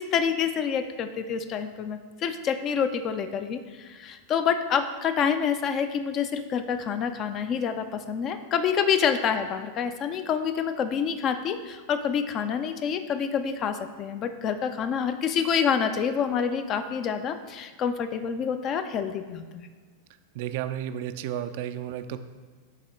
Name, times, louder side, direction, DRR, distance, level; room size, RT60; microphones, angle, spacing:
voice 1, 0.0-19.7, left 7 dB, 35° left, 9 dB, 0.4 m, -27 dB
voice 2, 20.3-22.2, right 11 dB, 50° right, 10 dB, 0.3 m, -32 dB
8.9 x 3.5 x 3.7 m, 1.5 s
figure-of-eight pair, 90°, 0 cm